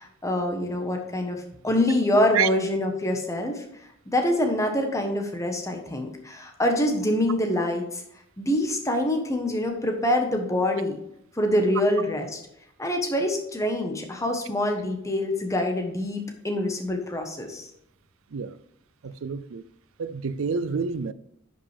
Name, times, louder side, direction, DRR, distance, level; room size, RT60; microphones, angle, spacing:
voice 1, 0.0-3.6 4.1-8.0 8.4-11.0 11.3-12.4 12.8-17.7, left 1 dB, 15° left, 1.2 m, -25 dB
voice 2, 19.0-19.6 20.0-21.1, right 6 dB, 70° right, 0.4 m, -28 dB
10.0 x 5.4 x 3.4 m
head